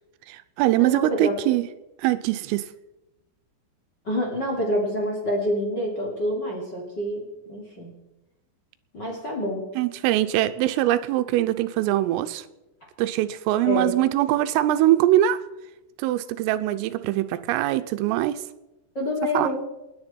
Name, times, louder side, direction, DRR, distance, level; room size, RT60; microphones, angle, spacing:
voice 1, 0.3-1.7 2.0-2.7 9.8-12.4 13.0-15.4 16.0-18.4 19.3-19.5, right 14 dB, 85° right, 11 dB, 3.3 m, -22 dB
voice 2, 0.8-1.4 4.0-7.9 8.9-9.7 13.6-13.9 18.9-19.7, left 1 dB, 25° left, -2 dB, 2.6 m, -27 dB
29.0 x 10.5 x 4.5 m, 0.99 s
omnidirectional pair, 5.9 m